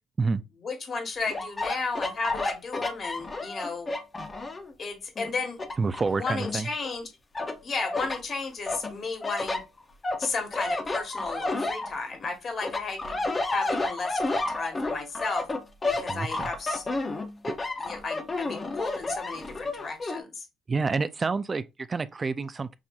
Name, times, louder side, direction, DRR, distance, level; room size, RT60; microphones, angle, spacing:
voice 1, 0.6-3.9 4.8-5.6 6.2-7.1 7.6-9.6 10.2-13.2 13.5-15.5 16.0-16.8 17.8-20.5, left 4 dB, 40° left, 1.4 m, -33 dB
sound 1, 1.3-4.7 5.2-6.9 7.3-8.2 8.7-12.3 12.6-20.2, left 2 dB, 25° left, 0.7 m, -31 dB
voice 2, 5.8-6.7 16.1-16.5 20.7-22.8, right 4 dB, 25° right, 0.3 m, -28 dB
6.0 x 2.7 x 2.3 m
cardioid pair, 115°, 0 cm